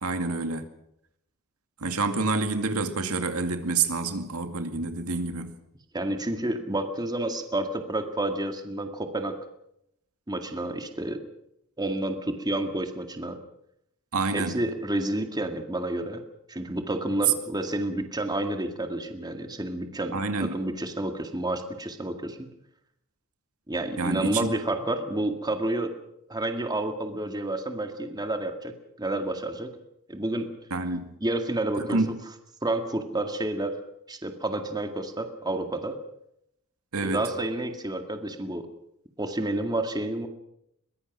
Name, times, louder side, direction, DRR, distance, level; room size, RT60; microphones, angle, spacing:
voice 1, 0.0-0.7 1.8-5.6 14.1-14.6 20.1-20.6 24.0-24.5 30.7-31.1 31.8-32.1 36.9-37.2, right 3 dB, 80° right, 2.2 m, -28 dB
voice 2, 5.9-9.3 10.3-11.2 11.8-13.4 14.3-16.2 16.5-22.4 23.7-25.9 26.3-28.7 29.0-29.7 30.1-30.5 31.2-32.0 32.6-33.7 34.1-36.0 37.0-38.7 39.2-40.3, right 1 dB, 20° right, 2.0 m, -30 dB
23.0 x 20.5 x 6.1 m
head